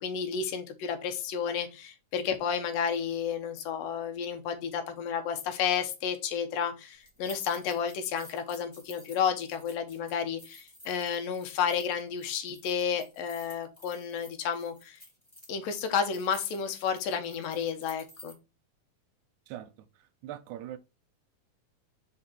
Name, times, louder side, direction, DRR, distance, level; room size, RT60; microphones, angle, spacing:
voice 1, 0.0-15.0 15.5-18.3, left 7 dB, 90° left, 2.8 m, -31 dB
sound 1, 7.0-18.3, left 1 dB, 15° left, 0.8 m, -53 dB
voice 2, 20.2-20.8, right 12 dB, 75° right, 1.9 m, -40 dB
6.2 x 4.5 x 4.4 m
omnidirectional pair, 3.9 m